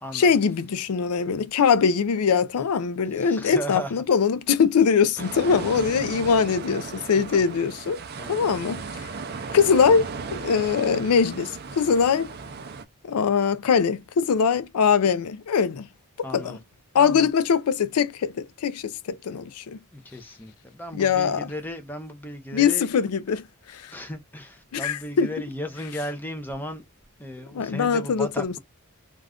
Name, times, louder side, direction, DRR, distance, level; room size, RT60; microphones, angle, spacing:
voice 1, 0.1-8.0 8.3-8.8 9.5-12.3 13.0-15.9 16.3-16.6 16.9-19.8 20.9-21.5 22.5-23.4 23.7-23.9 24.7-25.3 27.5-28.6, left 6 dB, 85° left, 0.4 m, -22 dB
voice 2, 3.1-3.9 5.2-5.3 7.1-7.4 8.1-8.3 16.2-16.6 17.0-17.3 19.9-23.1 23.9-26.8 27.2-28.6, equal, 10° left, 0.6 m, -35 dB
sound 1, 5.2-12.9, right 4 dB, 45° right, 0.4 m, -36 dB
2.4 x 2.4 x 3.4 m
head